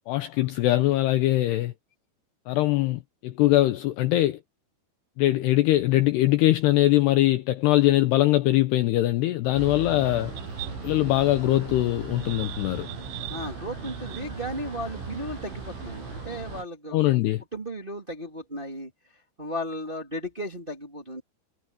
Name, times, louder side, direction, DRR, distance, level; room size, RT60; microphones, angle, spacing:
voice 1, 0.1-1.7 2.5-4.4 5.2-10.3 10.8-12.9 16.9-17.4, left 16 dB, 80° left, 2.5 m, -22 dB
sound 1, 9.5-16.6, right 5 dB, 75° right, 10.5 m, -37 dB
voice 2, 13.3-17.2 17.5-18.9 19.4-21.2, equal, 15° right, 1.7 m, -35 dB
omnidirectional pair, 5.6 m